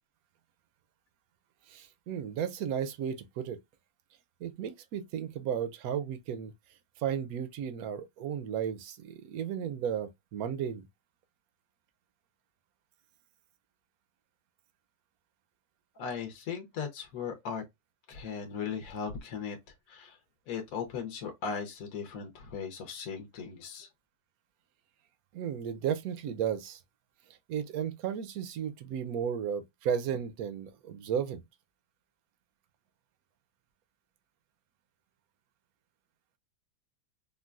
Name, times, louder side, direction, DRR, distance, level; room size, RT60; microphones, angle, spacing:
voice 1, 1.7-3.6 4.4-6.5 7.0-10.9 25.3-26.8 27.5-31.4, right 8 dB, 70° right, 0.9 m, -34 dB
voice 2, 16.0-17.6 18.1-19.6 19.9-20.2 20.5-23.9, left 6 dB, 60° left, 1.1 m, -37 dB
3.7 x 2.2 x 2.3 m
omnidirectional pair, 1.9 m